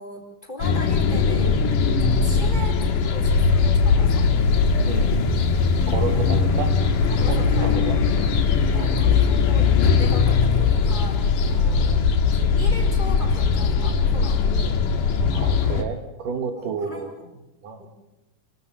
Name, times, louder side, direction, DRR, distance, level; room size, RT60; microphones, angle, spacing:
voice 1, 0.0-1.7 2.0-4.3 6.1-6.6 7.1-8.0 8.7-12.0 12.3-14.8 16.5-17.3 17.8-17.9, left 1 dB, 15° left, 2 dB, 4.0 m, -39 dB
sound 1, 0.6-15.8, left 5 dB, 75° left, 3.3 m, -20 dB
voice 2, 5.9-6.7 7.3-8.0 8.7-9.0 15.3-17.1 17.6-17.8, right 5 dB, 75° right, 8 dB, 3.2 m, -31 dB
28.5 x 13.0 x 9.1 m, 0.94 s
omnidirectional pair, 3.8 m